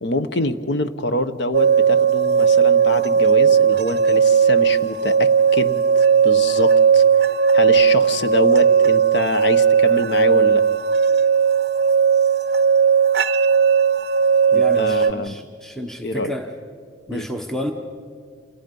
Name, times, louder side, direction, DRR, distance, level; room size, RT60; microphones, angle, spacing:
voice 1, 0.0-5.8 6.2-7.0 7.5-10.6 14.5-15.4 16.0-16.3 17.1-17.3, left 1 dB, 65° left, 10 dB, 1.0 m, -25 dB
sound 1, 1.5-15.1, right 6 dB, 60° right, 0.5 m, -16 dB
voice 2, 14.5-16.5 17.1-17.7, equal, ahead, 3 dB, 1.1 m, -30 dB
29.0 x 28.0 x 5.4 m, 2.2 s
head